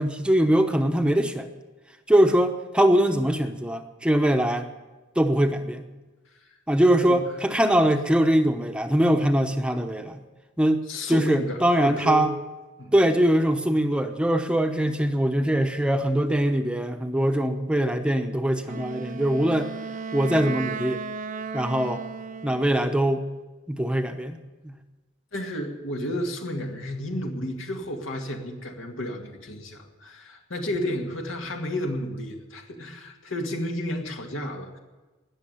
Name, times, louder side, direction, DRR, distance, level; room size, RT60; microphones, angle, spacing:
voice 1, 0.0-1.5 2.1-4.7 5.2-5.9 6.7-10.2 10.6-10.8 11.1-12.3 12.9-19.7 20.1-21.0 21.5-22.0 22.4-23.3 23.7-24.4 24.6-24.8, right 1 dB, 5° right, 6 dB, 0.8 m, -22 dB
voice 2, 10.9-12.3 12.8-12.9 25.3-34.8, equal, 80° left, 2 dB, 2.3 m, -32 dB
Wind instrument woodwind instrument, 18.6-22.9, right 4 dB, 40° right, 0.7 m, -35 dB
18.5 x 7.2 x 10.0 m, 1.2 s
head